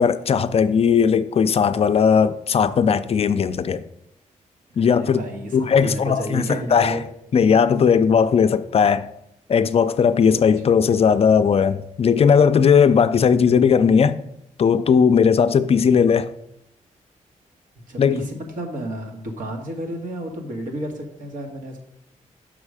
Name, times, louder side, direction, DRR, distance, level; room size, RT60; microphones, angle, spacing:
voice 1, 0.0-3.8 4.8-5.2 5.5-6.4 6.7-7.0 7.3-9.1 9.5-14.2 14.6-16.3 18.0-18.3, left 6 dB, 45° left, 0.4 m, -17 dB
voice 2, 4.8-7.0 10.3-10.8 17.9-21.8, equal, 85° right, 1.6 m, -32 dB
6.4 x 5.9 x 4.8 m
wide cardioid pair, 115°, 14 cm